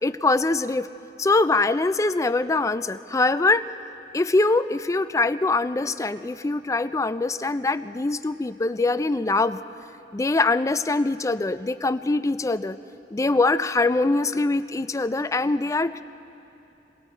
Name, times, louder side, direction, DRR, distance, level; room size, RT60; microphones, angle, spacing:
voice 1, 0.0-0.9 1.2-3.6 4.1-9.6 10.1-12.8 13.1-16.0, left 3 dB, 20° left, 12 dB, 0.4 m, -23 dB
29.0 x 21.5 x 4.5 m, 2.8 s
head